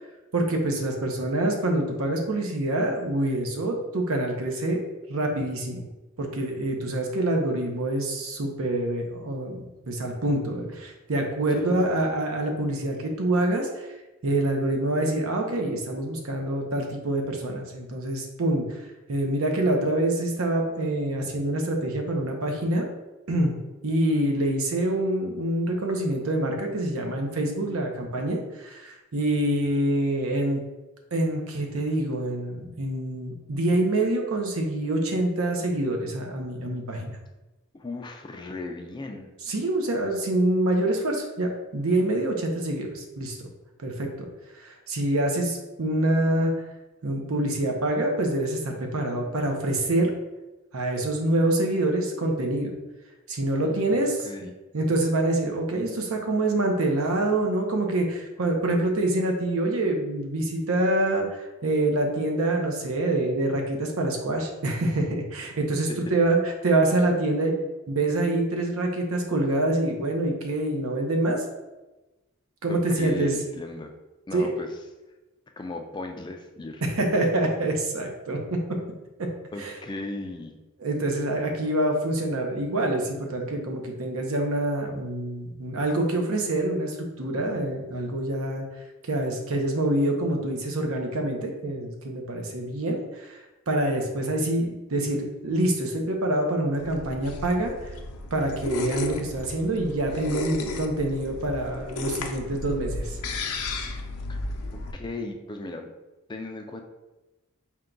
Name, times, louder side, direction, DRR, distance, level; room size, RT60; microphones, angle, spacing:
voice 1, 0.3-4.8 5.1-5.9 6.2-13.9 14.2-18.6 19.1-22.9 23.3-23.6 23.8-30.6 31.1-37.2 39.5-43.5 43.8-44.3 44.6-46.5 47.0-50.1 50.7-52.7 53.3-67.5 67.9-71.4 72.6-73.3 74.3-74.5 76.8-78.8 79.2-79.3 79.6-79.7 80.8-88.7 89.0-97.7 98.3-103.2, right 1 dB, 75° right, 2 dB, 0.7 m, -26 dB
voice 2, 11.5-12.1 37.7-39.3 53.6-54.5 65.9-66.0 72.7-73.9 74.3-74.8 75.6-76.8 79.5-80.5 104.3-104.4 104.7-105.9 106.3-106.8, left 2 dB, 20° left, 4 dB, 0.3 m, -37 dB
sound 1, 96.8-104.9, left 2 dB, 90° left, 0.5 m, -34 dB
4.5 x 2.2 x 3.8 m, 1.1 s
head